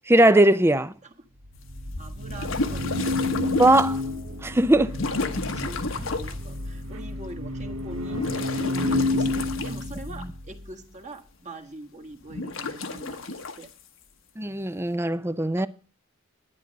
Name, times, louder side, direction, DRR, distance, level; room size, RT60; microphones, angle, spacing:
voice 1, 0.1-0.9 3.6-4.0 4.4-4.9 14.4-15.7, right 1 dB, 10° right, 0.6 m, -19 dB
sound 1, 1.4-10.7, left 2 dB, 85° right, 1.3 m, -30 dB
sound 2, 1.5-4.1 4.9-6.4 7.9-10.2 12.3-13.6, left 3 dB, 70° left, 1.2 m, -31 dB
voice 2, 2.0-3.0 4.6-13.7 15.6-15.7, right 2 dB, 35° right, 1.6 m, -43 dB
11.0 x 9.9 x 5.3 m
head